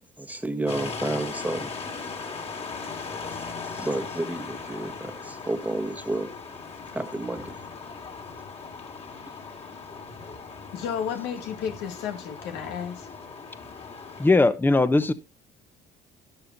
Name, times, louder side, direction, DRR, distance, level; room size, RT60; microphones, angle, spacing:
voice 1, 0.2-1.7 3.6-6.3 6.9-7.6 9.3-9.4, right 2 dB, 10° right, 1.3 m, -31 dB
sound 1, 0.7-14.3, left 4 dB, 35° left, 2.6 m, -38 dB
voice 2, 10.7-13.1, left 8 dB, 90° left, 2.3 m, -32 dB
voice 3, 14.2-15.1, left 2 dB, 10° left, 1.0 m, -19 dB
12.5 x 11.5 x 2.7 m
cardioid pair, 110°, 17 cm